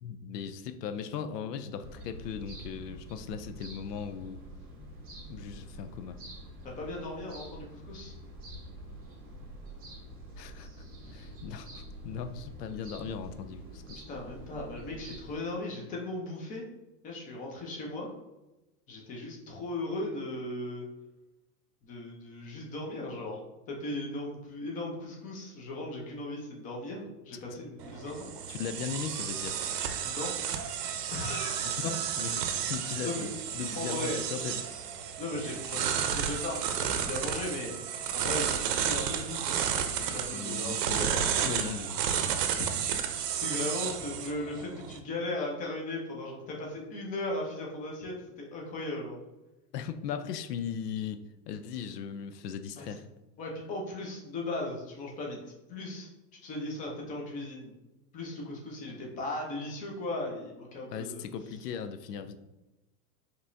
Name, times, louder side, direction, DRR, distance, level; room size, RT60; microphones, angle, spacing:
voice 1, 0.0-4.4 5.3-6.2 10.4-10.7 11.1-14.0 27.3-27.4 28.5-29.6 31.6-34.6 40.3-41.0 41.4-42.0 49.7-53.0 60.9-62.4, left 7 dB, 75° left, 10 dB, 0.6 m, -38 dB
sound 1, 1.8-15.4, right 1 dB, 20° right, 0.8 m, -46 dB
voice 2, 6.6-8.1 14.1-16.6 17.0-18.1 18.9-20.9 21.8-23.4 23.7-28.3 30.0-30.3 31.1-31.8 33.0-33.3 33.7-34.2 35.2-37.7 38.1-39.6 39.9-41.2 42.6-42.8 43.4-49.2 52.8-52.9 53.4-55.4 55.7-56.1 56.4-57.7 58.1-61.2, left 2 dB, 15° left, -1 dB, 0.6 m, -37 dB
sound 2, 27.8-45.0, right 8 dB, 75° right, 0.7 m, -32 dB
5.3 x 3.1 x 2.6 m, 1.0 s
supercardioid pair, 155°, 49 cm